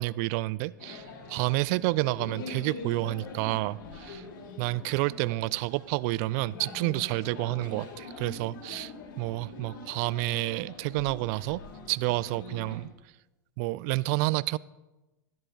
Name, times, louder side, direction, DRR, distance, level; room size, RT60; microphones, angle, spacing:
voice 1, 0.0-4.2 4.6-11.6 11.9-12.9 13.6-14.6, right 20 dB, 50° right, 21 dB, 0.4 m, -29 dB
sound 1, 0.8-12.9, left 3 dB, 60° left, 3.3 m, -44 dB
12.5 x 10.5 x 3.9 m, 1.0 s
hypercardioid pair, 100°, 11 cm